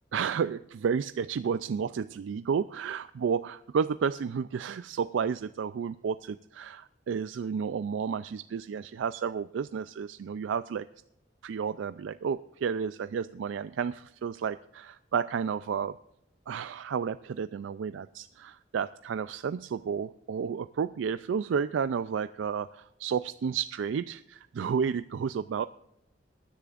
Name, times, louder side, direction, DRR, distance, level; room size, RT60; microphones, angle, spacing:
voice 1, 0.1-10.9 11.4-16.0 16.5-25.6, right 6 dB, 85° right, 13 dB, 0.3 m, -31 dB
22.5 x 10.0 x 2.5 m, 0.81 s
head